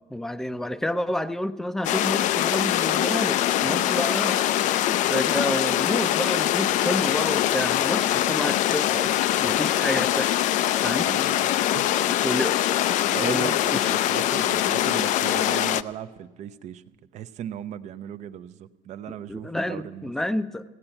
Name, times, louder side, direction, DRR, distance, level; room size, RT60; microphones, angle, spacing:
voice 1, 0.1-4.4 4.8-9.1 9.4-10.4 10.8-11.1 12.2-12.6 13.2-13.9 19.3-20.6, left 1 dB, 5° left, 13 dB, 0.5 m, -29 dB
sound 1, 1.8-15.8, left 12 dB, 60° left, 0.4 m, -23 dB
voice 2, 10.9-12.2 13.1-20.1, right 10 dB, 55° right, 12 dB, 0.6 m, -37 dB
16.0 x 8.8 x 9.0 m, 1.2 s
cardioid pair, 140°, 14 cm